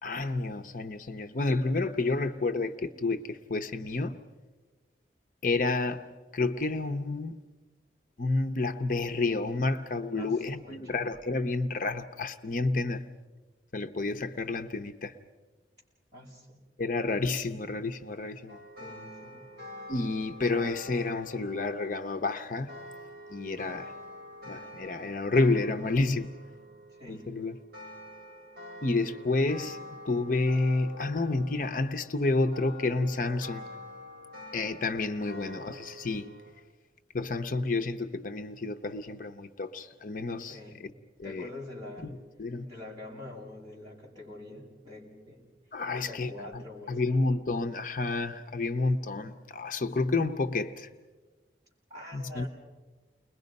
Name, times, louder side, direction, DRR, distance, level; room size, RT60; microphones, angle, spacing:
voice 1, 0.0-4.2 5.4-6.1 6.3-7.3 8.2-13.0 13.7-15.2 16.8-18.6 19.9-22.8 23.3-23.9 24.5-26.4 27.1-27.6 28.8-33.7 34.5-36.3 37.1-40.6 41.2-41.5 42.4-42.7 45.7-50.9 52.1-52.5, left 3 dB, 50° left, 0.7 m, -30 dB
voice 2, 10.1-11.0 16.1-16.6 18.8-19.5 26.9-27.4 40.5-40.8 41.2-42.1 42.6-45.4 45.9-47.2 51.9-52.5, left 2 dB, 25° right, 6.6 m, -45 dB
sound 1, 18.5-36.5, left 1 dB, 65° right, 7.2 m, -46 dB
30.0 x 21.5 x 5.3 m
head